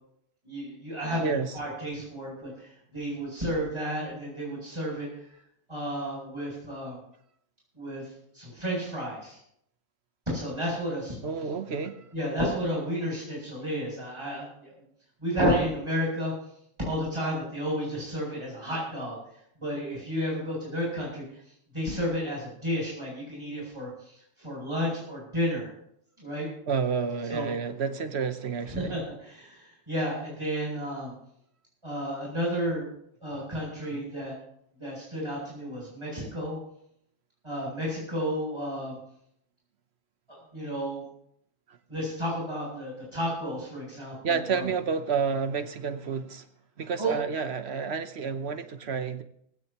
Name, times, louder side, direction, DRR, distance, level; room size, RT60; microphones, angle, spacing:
voice 1, 0.4-1.3 1.5-5.1 5.7-7.0 7.7-8.1 8.3-9.4 10.3-11.2 12.1-14.7 15.2-16.3 16.8-19.2 19.6-21.2 21.7-23.9 24.4-25.7 26.2-26.5 27.3-27.5 28.7-31.1 31.8-32.9 33.2-34.3 34.8-36.6 37.4-39.0 40.3-41.0 41.9-44.7 47.0-47.1, equal, 20° right, 8.2 m, -31 dB
voice 2, 1.2-1.6 11.2-12.1 26.7-29.0 33.9-34.0 41.7-41.8 44.2-46.5 46.8-49.2, right 5 dB, 55° right, 1.1 m, -30 dB
18.5 x 16.5 x 3.0 m
omnidirectional pair, 1.5 m